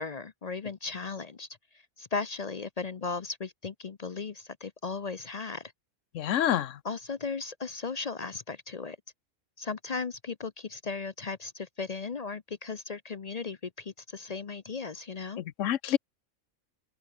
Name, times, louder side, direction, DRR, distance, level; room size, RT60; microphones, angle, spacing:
voice 1, 0.0-1.5 2.0-5.7 6.8-9.0 9.6-15.4, left 4 dB, 40° left, 0.6 m, -36 dB
voice 2, 6.1-6.8 15.4-16.0, left 11 dB, 75° left, 1.0 m, -27 dB
omnidirectional pair, 1.3 m